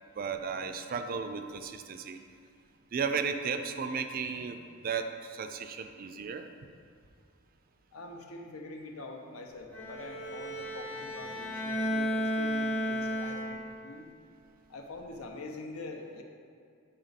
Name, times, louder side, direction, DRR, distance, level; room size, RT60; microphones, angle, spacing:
voice 1, 0.2-2.2 2.9-6.5, right 5 dB, 40° right, 8 dB, 0.3 m, -34 dB
voice 2, 7.9-14.1 14.7-16.2, left 2 dB, 85° left, 2 dB, 0.8 m, -44 dB
Bowed string instrument, 9.7-13.9, equal, 10° left, 0.7 m, -33 dB
9.3 x 3.9 x 4.0 m, 2.4 s
head